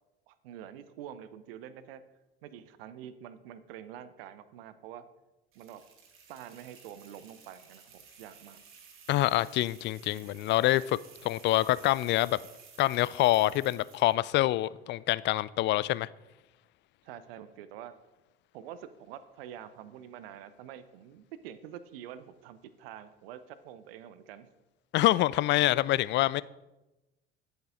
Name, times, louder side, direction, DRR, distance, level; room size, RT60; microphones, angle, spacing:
voice 1, 0.3-2.0 2.4-5.1 5.5-5.8 6.3-8.6 17.0-17.9 18.5-24.5, right 10 dB, 65° right, 0.8 m, -46 dB
sound 1, 5.5-14.2, right 6 dB, 40° right, 2.1 m, -55 dB
voice 2, 9.1-12.4 12.8-16.1 24.9-26.4, left 16 dB, 35° left, 0.4 m, -26 dB
10.0 x 8.1 x 5.0 m
figure-of-eight pair, 65°, 31 cm